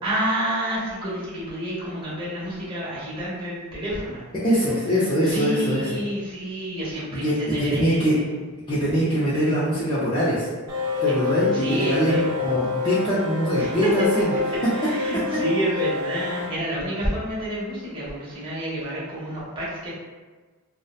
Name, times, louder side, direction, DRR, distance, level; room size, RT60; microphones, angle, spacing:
voice 1, 0.0-4.2 5.2-8.3 11.5-12.2 13.6-14.0 14.7-19.9, right 1 dB, 25° right, -9 dB, 0.8 m, -29 dB
voice 2, 4.4-5.9 7.2-8.1 8.7-10.5 11.0-14.3, equal, 20° left, -11 dB, 0.4 m, -23 dB
sound 1, 10.7-16.5, left 5 dB, 80° right, 0.6 m, -27 dB
2.7 x 2.0 x 2.3 m, 1.3 s
head